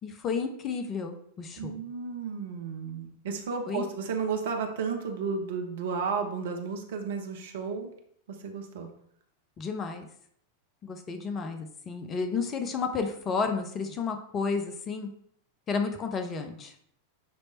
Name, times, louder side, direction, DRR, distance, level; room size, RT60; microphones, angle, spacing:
voice 1, 0.0-1.7 3.7-3.8 9.6-10.1 10.8-15.1 15.7-16.7, left 5 dB, 25° left, 6 dB, 0.9 m, -32 dB
voice 2, 1.6-7.9 8.3-8.9, right 5 dB, 55° right, 4 dB, 1.1 m, -33 dB
9.9 x 3.4 x 4.1 m, 0.67 s
figure-of-eight pair, 90°, 0 cm